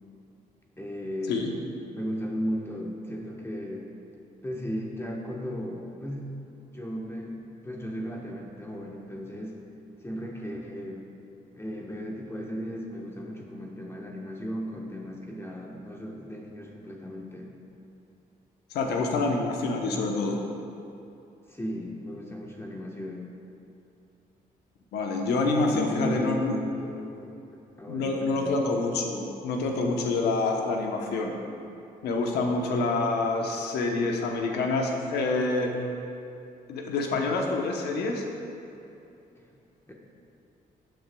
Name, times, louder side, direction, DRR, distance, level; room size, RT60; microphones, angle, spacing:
voice 1, 0.8-1.4 1.9-3.9 4.4-6.3 6.7-9.6 10.0-11.0 11.5-17.5 21.5-23.3 25.7-27.4 27.8-28.6 39.4-39.5 39.9-40.0, equal, 15° left, -1 dB, 1.1 m, -35 dB
voice 2, 18.7-20.4 24.9-26.5 27.9-31.3 32.0-35.7 36.7-38.2, left 3 dB, 90° left, 2 dB, 0.9 m, -27 dB
13.0 x 7.8 x 2.3 m, 2.7 s
supercardioid pair, 65°, 17 cm